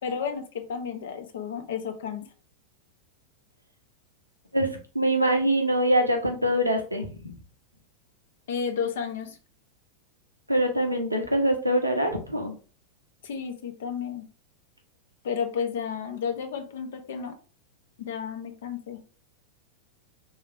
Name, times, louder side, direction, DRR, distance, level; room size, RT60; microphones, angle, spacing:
voice 1, 0.0-2.3 8.5-9.4 13.2-14.2 15.2-17.3 18.0-19.0, left 7 dB, 60° left, 6 dB, 0.7 m, -32 dB
voice 2, 4.9-7.2 10.5-12.5, equal, 85° right, 3 dB, 0.7 m, -24 dB
3.4 x 2.7 x 3.3 m, 0.37 s
figure-of-eight pair, 90°, 0 cm